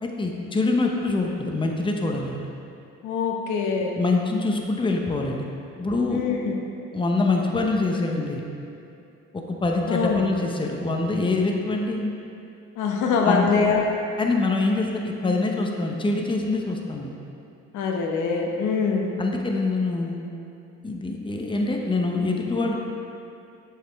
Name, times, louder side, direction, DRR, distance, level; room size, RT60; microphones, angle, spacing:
voice 1, 0.0-2.4 4.0-5.4 5.8-6.3 6.9-8.4 9.3-12.0 13.1-13.5 14.2-17.1 19.2-20.2 20.8-22.8, left 3 dB, 15° left, 1 dB, 0.7 m, -25 dB
voice 2, 3.0-3.9 6.1-6.5 9.9-10.2 12.8-13.8 17.7-19.1, left 5 dB, 80° left, 1 dB, 0.9 m, -23 dB
7.5 x 4.8 x 3.4 m, 2.6 s
cardioid pair, 90°, 30 cm